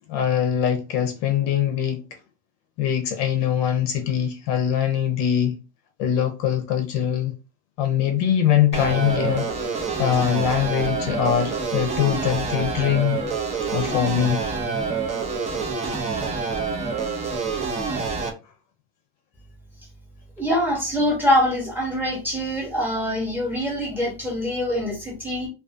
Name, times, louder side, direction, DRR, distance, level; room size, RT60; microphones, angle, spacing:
voice 1, 0.1-2.1 2.8-5.6 6.0-7.3 7.8-9.5 9.7-13.2 13.7-14.5, left 9 dB, 55° left, 0.6 m, -22 dB
sound 1, 8.7-18.3, right 4 dB, 20° right, 0.4 m, -27 dB
voice 2, 20.4-25.5, equal, 5° right, 0.9 m, -24 dB
2.4 x 2.4 x 2.5 m
cardioid pair, 160°, 32 cm